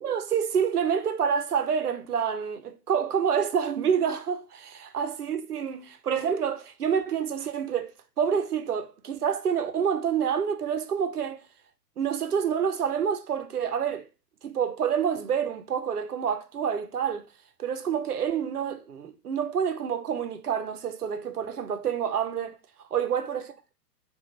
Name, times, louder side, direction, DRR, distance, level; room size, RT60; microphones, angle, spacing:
voice 1, 0.0-11.4 12.0-14.1 14.4-17.2 17.6-22.5 22.9-23.4, right 7 dB, 65° right, 0.7 m, -28 dB
4.8 x 2.4 x 2.9 m
figure-of-eight pair, 115°, 49 cm